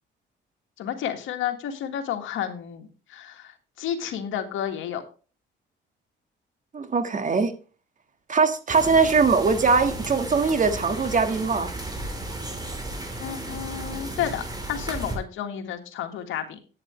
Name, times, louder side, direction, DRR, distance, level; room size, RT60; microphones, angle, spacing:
voice 1, 0.8-3.5 3.8-5.0 13.2-16.6, left 9 dB, 85° left, 1.7 m, -31 dB
voice 2, 6.7-7.5 8.3-11.7, right 4 dB, 40° right, 1.6 m, -21 dB
sound 1, 8.7-15.2, right 1 dB, 20° right, 3.5 m, -34 dB
10.5 x 9.1 x 3.2 m
cardioid pair, 90°, 20 cm